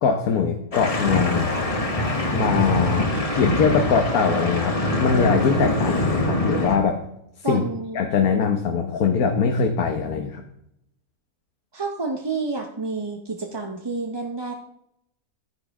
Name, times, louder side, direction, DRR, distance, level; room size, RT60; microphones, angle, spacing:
voice 1, 0.0-1.5 2.3-7.0 7.4-7.6 7.9-10.4, left 6 dB, 75° left, 4 dB, 1.4 m, -22 dB
sound 1, 0.7-6.8, left 1 dB, 25° left, 1.0 m, -23 dB
voice 2, 7.4-8.0 11.7-14.5, right 3 dB, 25° right, 3 dB, 0.5 m, -29 dB
10.5 x 9.9 x 3.5 m, 0.77 s
omnidirectional pair, 1.6 m